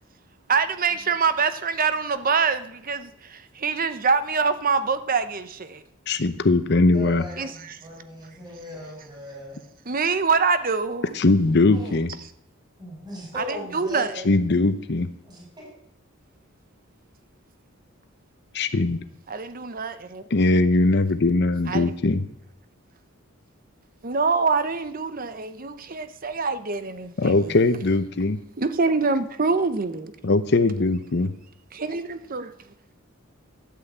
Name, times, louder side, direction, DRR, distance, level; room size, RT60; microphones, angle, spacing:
voice 1, 0.5-5.8 7.4-7.8 9.9-11.2 12.2-12.3 13.4-14.3 19.3-20.3 21.7-21.9 24.0-27.6 28.6-30.1 31.7-32.5, right 4 dB, 45° right, 0.9 m, -25 dB
voice 2, 6.1-7.2 11.2-12.1 14.3-15.1 18.5-19.0 20.3-22.2 27.2-28.4 30.2-31.3, left 2 dB, 55° left, 0.8 m, -20 dB
voice 3, 6.9-9.6 11.5-12.0 12.8-14.0 15.2-15.7, left 1 dB, 20° right, 5.5 m, -38 dB
12.5 x 9.0 x 8.1 m
head